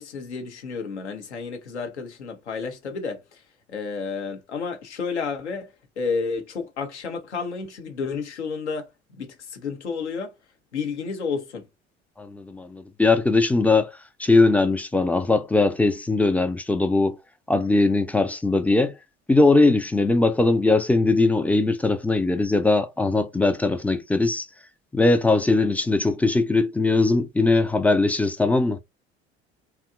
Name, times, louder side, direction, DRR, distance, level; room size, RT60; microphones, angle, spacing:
voice 1, 0.0-3.4 3.7-8.9 9.2-10.3 10.7-11.7, left 5 dB, 80° left, 0.7 m, -31 dB
voice 2, 12.2-13.9 14.2-17.2 17.5-18.9 19.3-24.5 24.9-28.8, left 3 dB, 5° left, 0.3 m, -20 dB
2.7 x 2.3 x 2.3 m
figure-of-eight pair, 55°, 34 cm